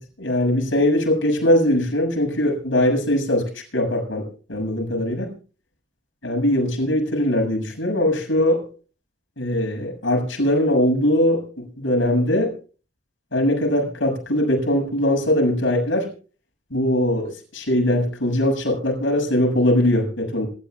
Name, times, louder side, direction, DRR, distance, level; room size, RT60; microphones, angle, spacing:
voice 1, 0.0-5.3 6.2-8.6 9.4-12.5 13.3-16.1 16.7-20.5, left 1 dB, 80° left, 1 dB, 6.9 m, -21 dB
27.0 x 13.5 x 2.3 m, 0.38 s
head